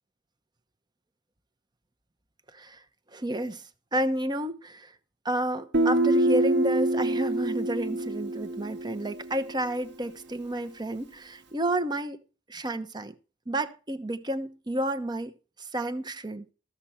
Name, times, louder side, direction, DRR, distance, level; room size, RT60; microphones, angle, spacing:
voice 1, 2.5-2.8 3.1-4.9 5.2-12.2 12.5-13.2 13.5-15.3 15.6-16.5, right 1 dB, 25° right, 0.9 m, -31 dB
Guitar, 5.7-9.4, right 2 dB, 65° right, 1.1 m, -25 dB
14.5 x 6.0 x 5.7 m
head